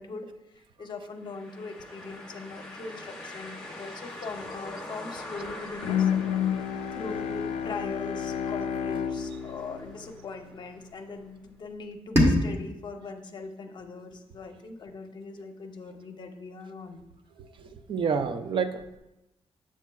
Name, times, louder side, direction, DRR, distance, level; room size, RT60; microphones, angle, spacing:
voice 1, 0.0-6.1 6.9-17.0, left 3 dB, 45° left, 5 dB, 0.7 m, -41 dB
sound 1, 1.2-11.0, left 1 dB, 5° left, 1.2 m, -44 dB
Bowed string instrument, 5.8-10.9, left 8 dB, 85° left, 0.4 m, -30 dB
sound 2, 12.1-15.1, left 1 dB, 20° right, 1.2 m, -28 dB
voice 2, 17.4-19.0, right 6 dB, 50° right, 9 dB, 0.5 m, -30 dB
7.2 x 7.1 x 2.3 m, 0.92 s
wide cardioid pair, 150°, 11 cm